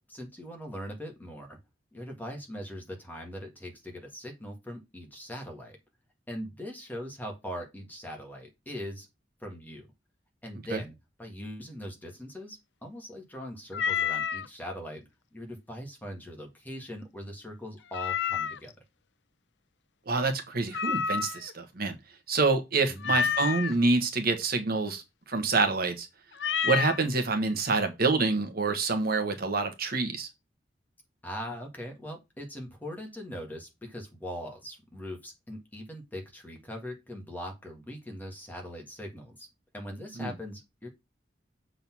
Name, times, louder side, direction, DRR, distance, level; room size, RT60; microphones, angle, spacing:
voice 1, 0.0-1.6 1.9-5.8 6.3-9.1 9.4-9.9 10.4-10.9 11.2-18.7 22.9-23.3 31.2-39.5 39.7-40.9, equal, 10° left, 1.9 m, -41 dB
Meow, 13.7-14.5 17.9-18.7 20.7-21.5 23.0-23.7 26.4-27.0, left 7 dB, 70° left, 0.5 m, -29 dB
voice 2, 20.1-21.9 22.3-26.1 26.6-30.3 40.2-40.3, right 3 dB, 55° right, 1.4 m, -27 dB
7.1 x 3.9 x 6.1 m
head